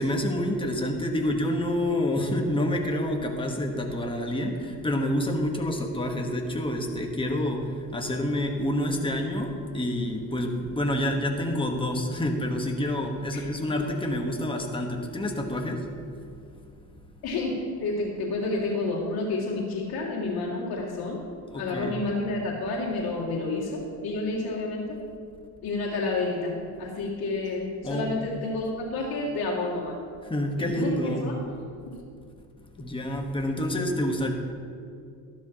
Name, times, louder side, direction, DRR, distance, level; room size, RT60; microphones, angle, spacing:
voice 1, 0.0-15.9 21.5-21.9 27.8-28.1 30.2-31.3 32.8-34.3, left 1 dB, 15° left, 2 dB, 1.3 m, -28 dB
voice 2, 13.3-13.7 17.2-21.3 21.5-25.0 25.6-26.5 26.8-29.9 30.6-31.4 31.9-32.0, left 2 dB, 70° left, -4 dB, 2.3 m, -30 dB
13.0 x 11.5 x 2.9 m, 2.4 s
cardioid pair, 115°, 38 cm